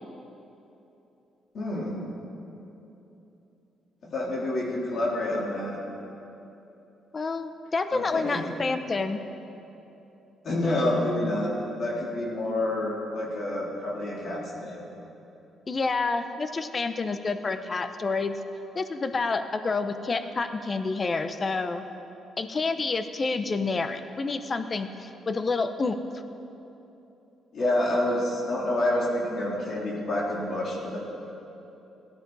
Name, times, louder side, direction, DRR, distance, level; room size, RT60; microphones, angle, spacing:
voice 1, 1.5-2.0 4.1-5.8 7.9-8.6 10.4-11.5 11.8-14.8 27.5-31.0, left 1 dB, 55° left, -4 dB, 3.6 m, -28 dB
voice 2, 7.1-9.2 15.7-18.4 18.7-21.8 22.4-26.0, left 3 dB, 35° left, 9 dB, 0.8 m, -28 dB
18.0 x 11.5 x 4.1 m, 3.0 s
cardioid pair, 90°, 0 cm